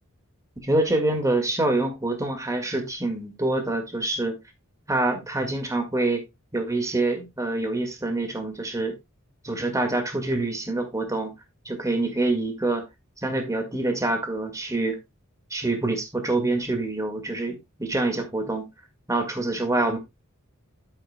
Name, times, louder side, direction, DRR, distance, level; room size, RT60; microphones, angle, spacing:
voice 1, 0.6-4.4 4.9-6.2 6.5-8.9 9.4-11.3 11.7-12.8 13.2-15.0 15.5-18.7 19.1-20.0, right 2 dB, 15° right, 1.9 m, -26 dB
12.0 x 7.9 x 2.2 m
head